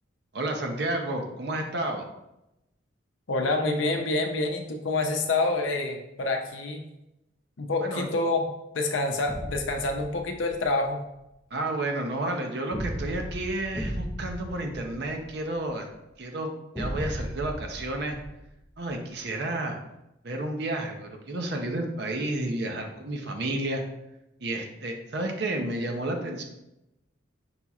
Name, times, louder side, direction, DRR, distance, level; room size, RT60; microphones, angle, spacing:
voice 1, 0.3-2.1 7.8-8.1 11.5-15.9 16.2-18.2 18.8-19.8 20.2-23.8 24.4-26.4, right 1 dB, 55° right, 3 dB, 0.6 m, -31 dB
voice 2, 3.3-6.9 7.6-8.4 8.7-11.0, left 2 dB, 75° left, 4 dB, 0.6 m, -27 dB
sound 1, 9.3-10.7 12.7-15.7 16.7-18.9, equal, ahead, 0.4 m, -36 dB
5.5 x 2.9 x 2.4 m, 0.90 s
head